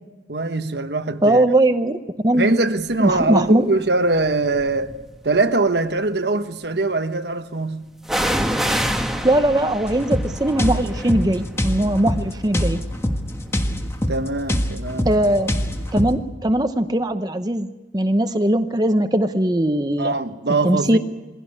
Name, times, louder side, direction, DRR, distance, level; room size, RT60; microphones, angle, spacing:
voice 1, 0.3-1.4 2.3-5.0 5.2-7.9 14.1-15.1 20.0-21.0, right 3 dB, 65° right, 1.2 m, -22 dB
voice 2, 1.2-1.9 2.2-2.5 3.0-3.6 9.2-12.8 15.1-15.5 15.9-20.1 20.6-21.0, right 1 dB, 20° right, 0.8 m, -20 dB
sound 1, 3.1-3.5 4.2-5.2 8.1-15.7 16.0-16.1, equal, ahead, 1.3 m, -29 dB
sound 2, 9.9-16.2, equal, 15° left, 1.5 m, -24 dB
22.0 x 16.5 x 9.6 m
head